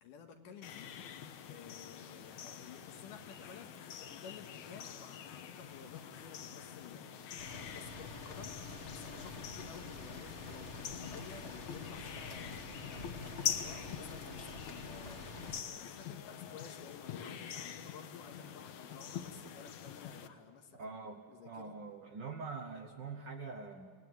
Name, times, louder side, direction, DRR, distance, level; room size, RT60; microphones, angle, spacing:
voice 1, 0.0-7.2 7.6-12.6 13.5-21.0 21.3-21.7, left 6 dB, 85° left, 5 dB, 3.2 m, -53 dB
sound 1, 0.6-20.3, left 9 dB, 70° left, 2.2 m, -45 dB
sound 2, 7.4-15.6, left 3 dB, 40° left, 0.9 m, -47 dB
voice 2, 20.7-23.9, right 4 dB, 85° right, 6 dB, 0.9 m, -44 dB
29.5 x 18.5 x 9.4 m, 2.3 s
omnidirectional pair, 3.7 m